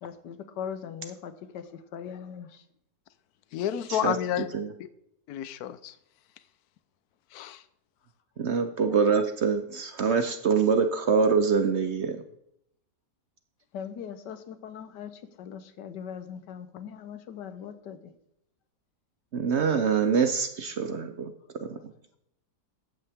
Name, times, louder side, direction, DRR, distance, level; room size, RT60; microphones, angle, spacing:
voice 1, 0.0-2.6 13.7-18.1, left 8 dB, 90° left, 11 dB, 1.5 m, -40 dB
voice 2, 3.5-4.9 5.3-5.9 7.3-7.6, left 11 dB, 70° left, 15 dB, 1.1 m, -31 dB
voice 3, 8.4-12.2 19.3-21.3 21.7-21.8, right 5 dB, 55° right, 8 dB, 0.8 m, -25 dB
13.5 x 8.6 x 3.6 m, 0.77 s
omnidirectional pair, 1.8 m